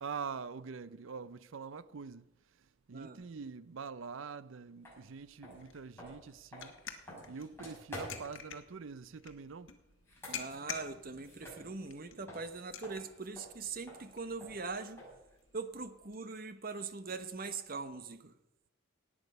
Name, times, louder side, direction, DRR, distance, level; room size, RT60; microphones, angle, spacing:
voice 1, 0.0-2.2 2.9-6.7 7.3-9.7, right 5 dB, 70° right, 0.5 m, -44 dB
sound 1, 4.8-5.0 5.4-8.4 9.9-12.0 12.3-15.3, equal, 10° left, 6.8 m, -49 dB
sound 2, 4.9-16.2, left 7 dB, 65° left, 1.5 m, -50 dB
voice 2, 10.3-15.0 15.5-18.3, right 4 dB, 45° right, 0.9 m, -42 dB
18.0 x 8.9 x 5.4 m
head